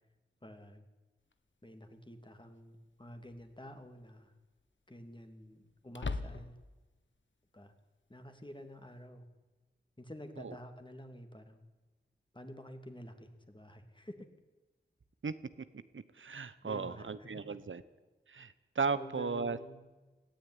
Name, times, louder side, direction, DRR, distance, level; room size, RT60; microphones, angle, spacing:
voice 1, 0.4-0.8 1.6-4.3 4.9-6.6 7.5-7.7 8.1-9.3 10.0-11.6 12.3-14.3 16.6-17.5 18.9-19.8, left 1 dB, 25° left, 6 dB, 2.9 m, -49 dB
sound 1, 1.3-1.4 3.2-3.6 4.0-4.1 5.9-6.8, left 3 dB, 75° left, 1.3 m, -39 dB
voice 2, 15.9-17.8 18.3-19.6, right 5 dB, 85° right, 13 dB, 1.0 m, -36 dB
18.5 x 14.5 x 9.9 m, 1.2 s
wide cardioid pair, 45°, 20 cm